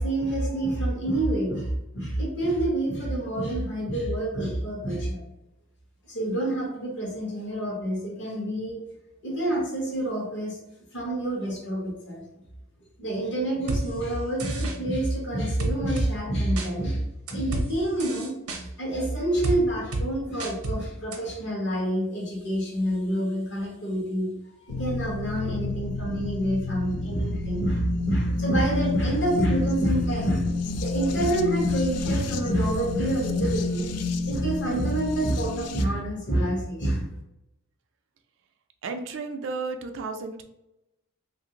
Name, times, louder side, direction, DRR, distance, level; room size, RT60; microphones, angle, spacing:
voice 1, 0.0-1.7 1.9-5.2 6.1-8.8 9.2-10.6 10.9-12.2 13.0-17.0 17.3-24.3 24.6-33.9 34.2-37.1, right 1 dB, 55° left, -2 dB, 1.0 m, -27 dB
sound 1, 13.7-13.8 14.4-14.8 15.6-16.1 16.6-16.7 17.3-17.7 18.0-18.6 19.4-19.6 19.9-20.1 20.4-20.8 21.1-21.2, right 2 dB, 80° right, 0.7 m, -29 dB
sound 2, 24.7-35.8, left 3 dB, 90° left, 0.3 m, -30 dB
voice 2, 38.8-40.4, right 4 dB, 55° right, 6 dB, 0.3 m, -33 dB
3.2 x 2.5 x 2.8 m, 0.89 s
head